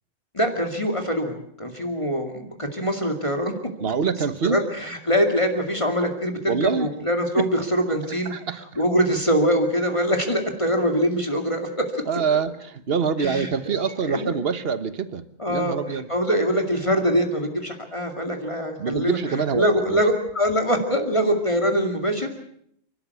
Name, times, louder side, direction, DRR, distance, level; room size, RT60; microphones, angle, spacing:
voice 1, 0.3-3.5 4.5-8.3 8.8-12.0 13.2-14.4 15.4-19.2 19.5-22.4, equal, 25° left, 3 dB, 2.4 m, -23 dB
voice 2, 3.8-4.6 6.5-6.9 7.4-7.5 8.0-8.8 12.1-16.1 18.8-20.0, right 6 dB, 50° right, 12 dB, 1.3 m, -25 dB
29.0 x 13.0 x 8.2 m, 0.70 s
omnidirectional pair, 1.3 m